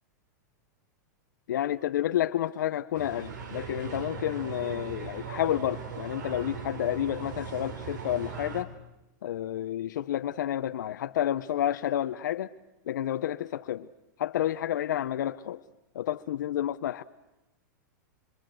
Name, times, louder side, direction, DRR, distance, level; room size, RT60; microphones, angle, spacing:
voice 1, 1.5-8.7 9.2-12.5 12.9-13.9 14.2-15.6 15.9-17.0, left 11 dB, 85° left, 0.8 m, -30 dB
sound 1, 2.9-8.6, right 6 dB, 80° right, 3.6 m, -39 dB
25.0 x 25.0 x 7.8 m
supercardioid pair, 150°, 10 cm